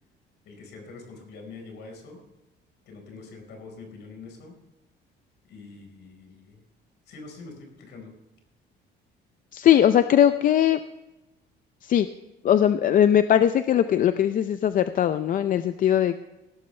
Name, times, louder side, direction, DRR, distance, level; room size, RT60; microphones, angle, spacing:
voice 1, 0.4-2.2 2.9-4.6 5.4-6.6 7.1-8.1, left 3 dB, 70° left, 3 dB, 4.7 m, -44 dB
voice 2, 9.5-10.8 11.8-12.1 12.4-16.2, left 10 dB, 45° left, 11 dB, 0.5 m, -20 dB
17.0 x 12.5 x 3.3 m, 1.0 s
cardioid pair, 145°, 19 cm